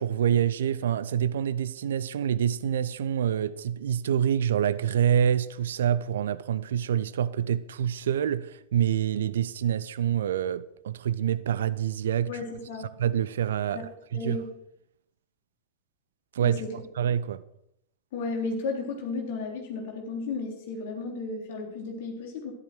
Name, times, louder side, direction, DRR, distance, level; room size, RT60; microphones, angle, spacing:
voice 1, 0.0-12.4 13.0-14.4 16.3-16.6 17.0-17.4, right 9 dB, 60° right, 0.6 m, -26 dB
voice 2, 12.3-12.9 13.6-13.8 14.1-14.5 16.4-16.7 18.1-22.5, left 3 dB, 50° left, 3.5 m, -34 dB
13.5 x 12.0 x 4.7 m
figure-of-eight pair, 90°, 0 cm